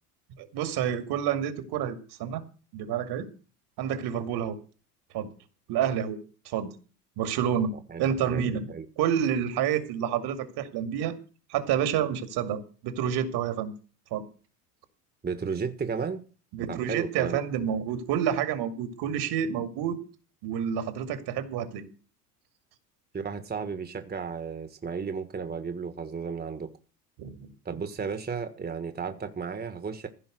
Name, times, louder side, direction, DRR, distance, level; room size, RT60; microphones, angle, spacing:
voice 1, 0.4-2.4 2.7-3.3 3.8-4.6 5.1-5.3 5.7-6.2 6.4-6.7 7.2-7.7 8.0-8.7 9.0-11.2 11.5-13.7 14.1-14.3 16.5-20.0 20.4-21.9 27.2-27.5, right 9 dB, 55° right, 2.4 m, -29 dB
voice 2, 7.9-8.9 15.2-16.2 16.7-17.4 23.1-26.7 27.7-30.1, right 5 dB, 20° right, 1.6 m, -34 dB
15.5 x 5.4 x 9.2 m
hypercardioid pair, 75°, 48 cm